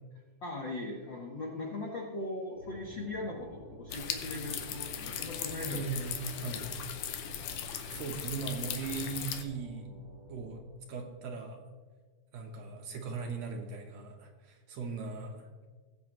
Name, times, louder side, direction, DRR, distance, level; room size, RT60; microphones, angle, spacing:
voice 1, 0.4-5.8 6.4-6.5, left 2 dB, 60° left, -2 dB, 1.2 m, -39 dB
sound 1, 2.5-10.6, right 1 dB, 45° left, 3.5 m, -50 dB
sound 2, 3.9-9.4, left 8 dB, 90° left, 2.3 m, -38 dB
voice 2, 5.5-6.7 7.9-9.9 10.3-10.6 10.9-11.6 12.3-15.7, right 4 dB, 65° right, 2 dB, 2.0 m, -39 dB
18.5 x 7.6 x 3.0 m, 1.4 s
omnidirectional pair, 3.6 m